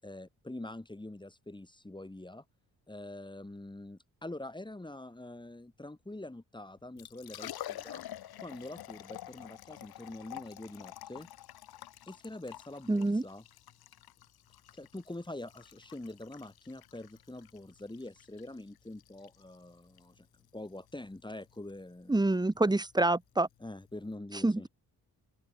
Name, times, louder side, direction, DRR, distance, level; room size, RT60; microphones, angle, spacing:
voice 1, 0.0-2.4 2.9-8.0 8.4-11.3 12.1-13.4 14.7-20.3 20.5-22.2 23.6-24.7, left 1 dB, 10° left, 5.9 m, -45 dB
Liquid, 6.8-24.1, left 13 dB, 90° left, 4.1 m, -49 dB
voice 2, 12.9-13.2 22.1-23.5 24.4-24.7, right 2 dB, 10° right, 1.2 m, -27 dB
cardioid pair, 85°, 36 cm